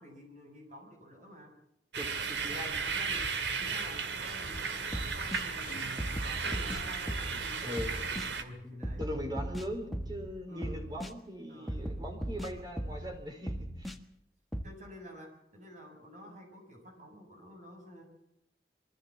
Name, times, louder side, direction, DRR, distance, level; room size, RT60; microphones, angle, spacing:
voice 1, 0.0-1.5 2.4-3.3 3.6-9.1 10.5-11.1 11.5-12.1 14.6-18.0, equal, 45° right, 3 dB, 6.9 m, -50 dB
sound 1, 1.9-8.4, right 5 dB, 85° right, 2.1 m, -35 dB
voice 2, 2.0-2.8 7.6-7.9 9.0-13.9, equal, 25° right, 4 dB, 4.4 m, -40 dB
sound 2, 4.5-4.6 4.9-5.4 6.0-7.4 7.8-8.3 8.8-10.3 10.6-11.1 11.7-13.1 13.5-14.0 14.5-14.7, equal, ahead, 1.6 m, -38 dB
Guitar, 5.6-6.9, equal, 50° left, 1.1 m, -49 dB
23.5 x 14.5 x 7.4 m, 0.81 s
head